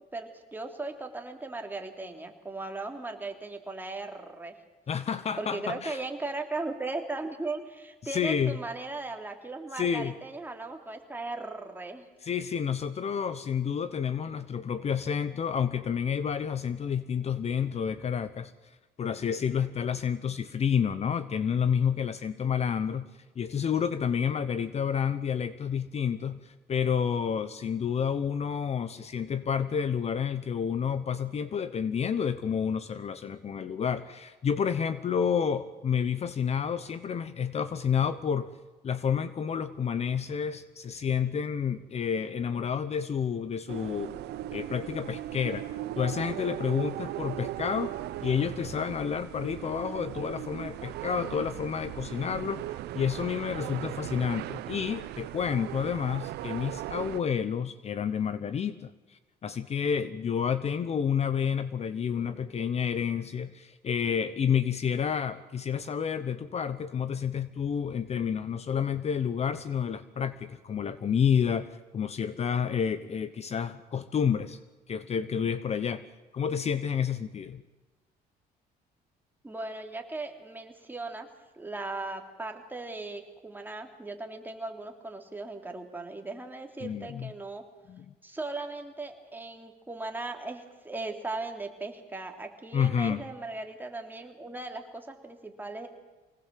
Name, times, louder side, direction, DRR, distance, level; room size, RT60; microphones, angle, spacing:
voice 1, 0.1-4.6 5.4-12.1 79.4-81.3 81.5-87.6 88.2-95.9, right 2 dB, 10° right, 3 dB, 3.1 m, -38 dB
voice 2, 4.9-6.0 8.0-8.6 9.7-10.1 12.2-18.5 19.0-23.1 23.4-38.5 38.8-44.1 44.5-48.0 48.2-52.6 52.9-74.6 74.9-76.0 76.3-77.6 86.8-87.3 87.9-88.0 92.7-93.2, left 7 dB, 40° left, 14 dB, 0.9 m, -29 dB
sound 1, 43.7-57.2, right 14 dB, 75° right, 0.9 m, -38 dB
25.0 x 19.0 x 7.6 m, 1.2 s
cardioid pair, 110°, 17 cm